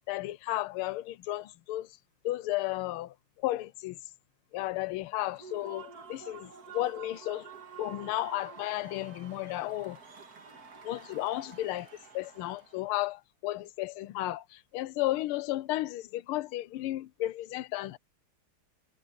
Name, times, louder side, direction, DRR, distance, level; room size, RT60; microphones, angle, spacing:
voice 1, 0.1-2.0 2.2-4.0 4.5-7.5 7.8-10.0 10.8-11.9 12.1-18.0, left 16 dB, 85° left, 1.6 m, -33 dB
Human voice / Cheering / Applause, 5.2-12.8, right 6 dB, 45° right, 2.1 m, -49 dB
omnidirectional pair, 2.4 m